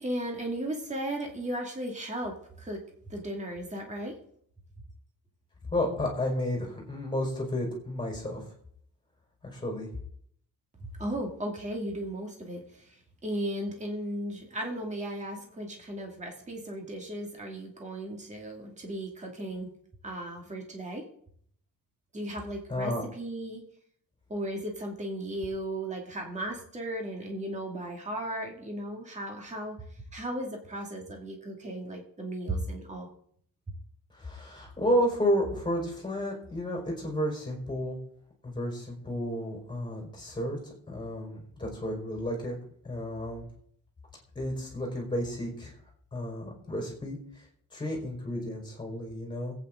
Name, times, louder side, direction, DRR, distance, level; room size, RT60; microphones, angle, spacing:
voice 1, 0.0-4.2 10.8-19.7 20.0-21.0 22.1-23.6 24.3-33.1, right 1 dB, 20° right, 1 dB, 2.3 m, -36 dB
voice 2, 5.7-8.5 9.5-9.9 22.7-23.0 34.1-38.0 38.4-42.6 42.8-43.4 44.3-45.7 46.1-47.4 47.7-49.5, equal, 15° left, -1 dB, 4.6 m, -32 dB
21.5 x 9.0 x 3.8 m, 0.64 s
wide cardioid pair, 165°, 34 cm